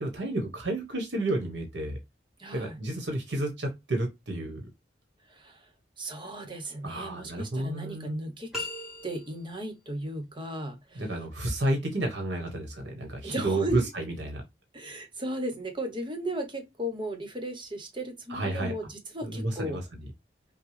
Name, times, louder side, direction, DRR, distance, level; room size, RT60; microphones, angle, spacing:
voice 1, 0.0-2.0 2.5-4.6 6.8-8.2 10.9-14.4 18.3-18.7 19.2-19.8, right 2 dB, 90° right, 1.2 m, -31 dB
voice 2, 2.4-2.8 5.3-5.7 6.0-8.7 9.0-11.2 13.2-13.8 14.7-19.8, right 1 dB, 30° right, 1.1 m, -36 dB
sound 1, 8.5-9.6, left 2 dB, 5° right, 1.5 m, -37 dB
5.9 x 2.2 x 3.2 m
head